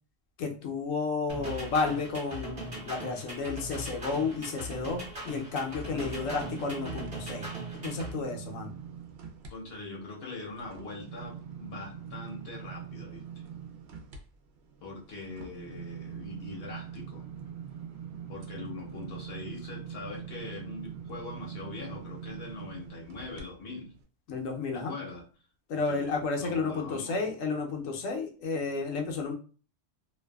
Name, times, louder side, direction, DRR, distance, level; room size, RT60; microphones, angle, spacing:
voice 1, 0.4-8.7 24.3-24.9 25.7-29.3, left 4 dB, 85° left, 2 dB, 1.0 m, -32 dB
sound 1, 1.3-8.1, right 1 dB, 30° right, 1.0 m, -40 dB
sound 2, 4.9-9.5 9.9-23.4 23.9-24.0, right 8 dB, 65° right, 0.7 m, -43 dB
voice 2, 9.5-13.2 14.8-17.2 18.3-23.9 24.7-25.3 25.7-27.3, left 3 dB, 55° left, -1 dB, 0.8 m, -42 dB
2.6 x 2.3 x 2.2 m, 0.37 s
omnidirectional pair, 1.3 m